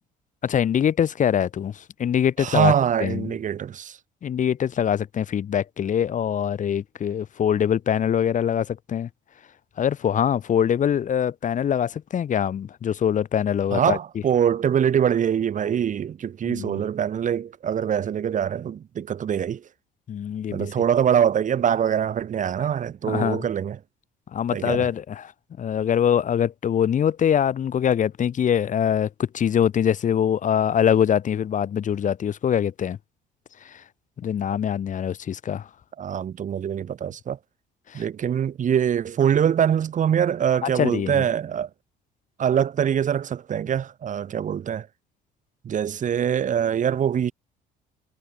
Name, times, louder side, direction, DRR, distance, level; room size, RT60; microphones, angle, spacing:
voice 1, 0.4-2.7 3.0-3.3 4.2-9.1 9.8-14.0 16.4-16.8 20.1-20.7 23.1-23.5 24.3-25.3 25.6-33.0 33.6-33.8 34.2-35.7 37.9-38.0 40.6-41.2, left 9 dB, 50° left, 4.3 m, -23 dB
voice 2, 2.4-4.0 13.7-19.6 20.5-23.8 24.5-24.9 36.0-37.4 37.9-41.7 42.4-44.9 45.6-47.3, right 8 dB, 50° right, 5.5 m, -23 dB
cardioid pair, 110°, 17 cm